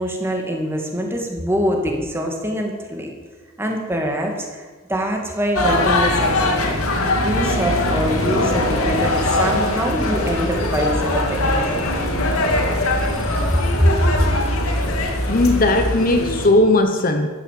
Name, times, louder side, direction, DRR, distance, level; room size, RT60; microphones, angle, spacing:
voice 1, 0.0-3.1 3.6-11.8 13.5-14.2, equal, 10° right, 1 dB, 2.4 m, -23 dB
sound 1, 5.5-16.5, left 1 dB, 85° left, 2.6 m, -21 dB
voice 2, 15.3-17.3, left 2 dB, 40° left, 6 dB, 1.1 m, -17 dB
14.0 x 11.5 x 7.8 m, 1.3 s
head